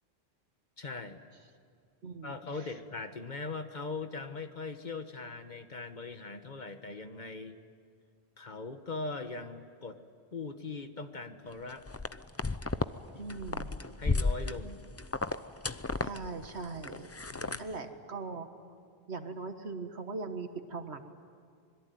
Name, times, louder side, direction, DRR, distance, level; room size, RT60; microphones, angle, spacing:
voice 1, 0.8-1.2 2.2-7.6 8.4-10.0 10.3-11.9 13.1-13.2 14.0-14.9 17.3-17.8, left 3 dB, 45° left, 8 dB, 1.4 m, -40 dB
voice 2, 2.0-2.7 13.2-13.7 16.0-17.1 17.6-18.5 19.1-21.0, right 4 dB, 85° right, 7 dB, 1.9 m, -40 dB
sound 1, 11.9-12.9 13.2-17.8, left 3 dB, 20° left, 0.5 m, -33 dB
26.0 x 22.0 x 9.3 m, 2.2 s
omnidirectional pair, 1.1 m